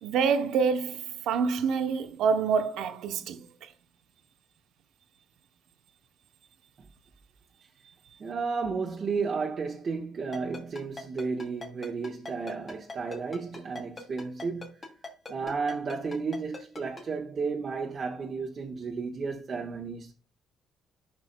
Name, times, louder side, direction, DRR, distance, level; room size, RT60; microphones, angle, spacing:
voice 1, 0.0-3.7, right 6 dB, 85° right, 0.7 m, -27 dB
voice 2, 8.2-14.7 15.3-20.1, right 4 dB, 45° right, 1.2 m, -33 dB
Ringtone, 10.3-17.0, left 3 dB, 30° left, 2.7 m, -40 dB
12.5 x 6.0 x 2.2 m
cardioid pair, 110°, 0 cm